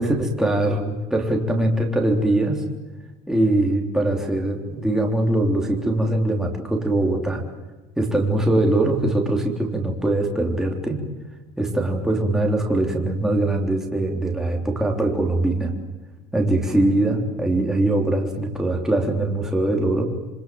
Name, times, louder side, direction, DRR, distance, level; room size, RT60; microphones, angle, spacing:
voice 1, 0.0-2.7 3.3-7.4 8.0-11.1 11.6-15.7 16.3-20.0, right 2 dB, 5° right, 0 dB, 3.6 m, -22 dB
27.5 x 25.5 x 7.8 m, 1.2 s
cardioid pair, 155°, 20 cm